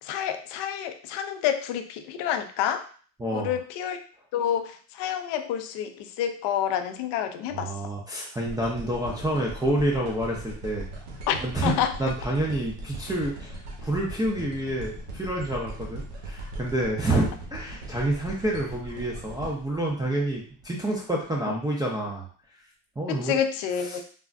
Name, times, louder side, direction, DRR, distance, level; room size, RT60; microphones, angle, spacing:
voice 1, 0.0-2.9 3.3-4.0 4.3-7.9 11.3-11.9 23.1-24.0, left 9 dB, 55° left, 8 dB, 0.5 m, -28 dB
voice 2, 3.2-3.5 7.5-10.9 11.4-22.2 23.0-23.4, right 1 dB, 10° right, -4 dB, 0.4 m, -28 dB
sound 1, 8.5-20.7 21.2-21.3, right 2 dB, 60° right, 1.0 m, -39 dB
3.4 x 2.0 x 2.5 m, 0.43 s
supercardioid pair, 90°, 49 cm